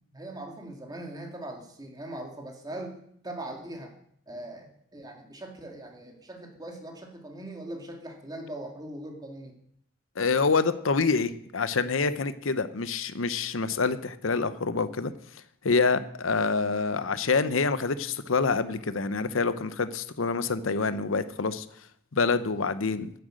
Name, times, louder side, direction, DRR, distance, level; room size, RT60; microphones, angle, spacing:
voice 1, 0.1-3.0 3.2-3.9 4.3-9.5, right 1 dB, 20° right, 2 dB, 2.1 m, -40 dB
voice 2, 10.2-15.1 15.6-21.6 22.1-23.1, left 4 dB, 80° left, 13 dB, 0.8 m, -26 dB
10.0 x 7.8 x 7.7 m, 0.69 s
head